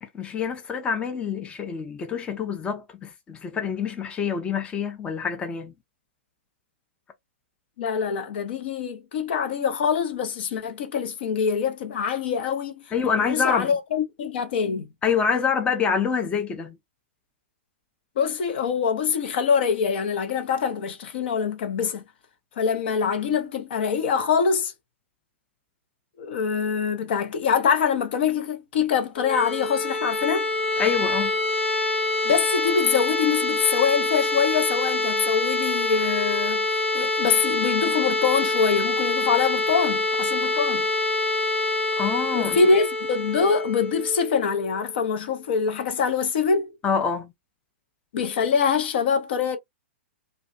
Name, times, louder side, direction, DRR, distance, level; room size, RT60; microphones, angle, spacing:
voice 1, 0.0-5.7 12.9-13.7 15.0-16.8 30.8-31.3 42.0-42.6 46.8-47.3, left 6 dB, 15° left, 0.5 m, -26 dB
voice 2, 7.8-12.9 13.3-14.9 18.2-22.0 22.6-24.7 26.2-30.5 32.2-40.9 42.3-46.8 48.1-49.6, left 6 dB, 55° left, 0.7 m, -24 dB
sound 1, 29.2-44.9, left 2 dB, 90° left, 1.0 m, -25 dB
2.5 x 2.2 x 2.4 m
figure-of-eight pair, 115°, 7 cm